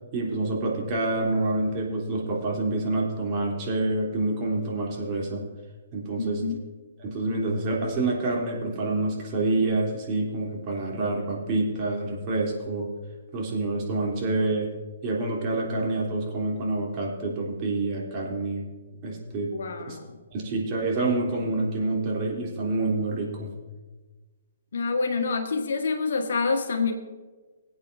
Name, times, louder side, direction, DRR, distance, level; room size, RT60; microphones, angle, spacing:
voice 1, 0.1-5.4 5.9-6.4 7.0-12.9 13.3-14.7 15.0-18.7 19.0-19.5 19.9-20.0 20.3-23.5, right 2 dB, 35° right, -3 dB, 3.3 m, -27 dB
voice 2, 6.2-6.6 19.5-20.2 24.7-26.9, left 4 dB, 65° left, 4 dB, 1.6 m, -27 dB
22.0 x 8.8 x 2.7 m, 1.3 s
figure-of-eight pair, 130°, 0 cm